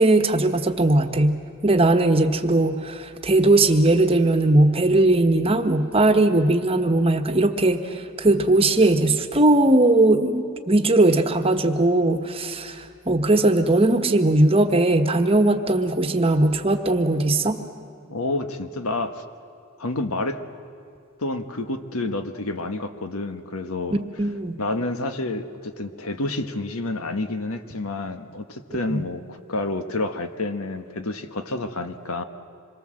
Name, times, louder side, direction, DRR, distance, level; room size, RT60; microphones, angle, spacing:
voice 1, 0.0-1.4 1.6-17.6 24.2-24.5 28.9-29.0, right 2 dB, 25° right, 7 dB, 1.2 m, -19 dB
voice 2, 18.1-19.2 19.8-20.4 21.2-24.0 24.6-32.2, left 2 dB, 85° left, 9 dB, 1.4 m, -29 dB
26.5 x 22.5 x 7.7 m, 2.6 s
head